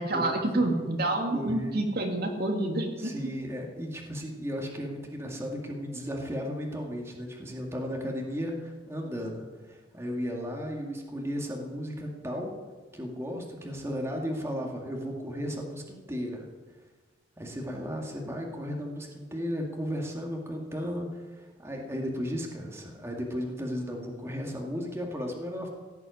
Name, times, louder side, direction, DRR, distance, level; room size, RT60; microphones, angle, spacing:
voice 1, 0.0-3.1, right 2 dB, 55° right, 2 dB, 2.3 m, -28 dB
voice 2, 1.3-1.8 3.0-12.5 12.9-16.4 17.4-25.7, equal, 15° right, 0 dB, 2.1 m, -35 dB
16.5 x 8.2 x 9.5 m, 1.4 s
head